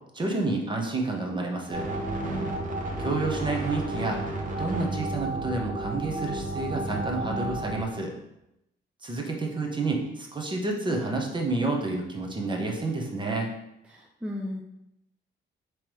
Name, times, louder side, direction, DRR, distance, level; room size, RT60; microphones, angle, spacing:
voice 1, 0.1-1.9 3.0-4.2 4.6-8.1 9.0-13.5, right 3 dB, 25° right, 1 dB, 1.0 m, -29 dB
sound 1, 1.7-7.8, right 2 dB, 40° right, 1.1 m, -32 dB
voice 2, 2.2-2.5 13.9-14.6, left 1 dB, 5° right, -2 dB, 0.6 m, -35 dB
3.6 x 3.1 x 4.6 m, 0.85 s
cardioid pair, 90°, 20 cm